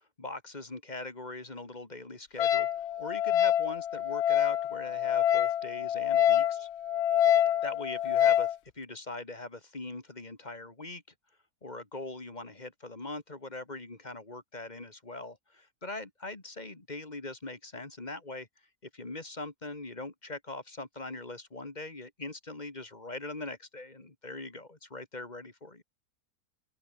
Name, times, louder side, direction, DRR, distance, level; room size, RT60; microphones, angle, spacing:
voice 1, 0.0-6.7 7.6-11.0 11.6-18.5 18.9-25.8, left 2 dB, 25° left, 2.3 m, -41 dB
Wind instrument woodwind instrument, 2.4-8.5, left 10 dB, 60° left, 0.8 m, -26 dB
open air
omnidirectional pair, 1.7 m